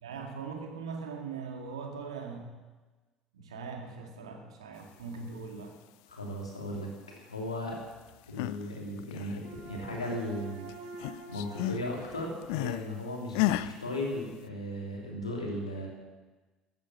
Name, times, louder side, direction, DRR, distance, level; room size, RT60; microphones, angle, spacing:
voice 1, 0.0-2.6 3.3-5.8, right 5 dB, 75° right, 3 dB, 2.1 m, -41 dB
voice 2, 6.1-7.8 8.3-10.7 11.3-15.9, left 1 dB, 85° left, -1 dB, 2.9 m, -36 dB
sound 1, 8.1-8.7 9.0-10.4 10.7-12.9 13.3-13.7, left 15 dB, 60° left, 0.5 m, -33 dB
sound 2, 9.4-13.7, right 4 dB, 55° right, 2.2 m, -48 dB
14.5 x 9.2 x 7.3 m, 1.3 s
figure-of-eight pair, 60°, 3 cm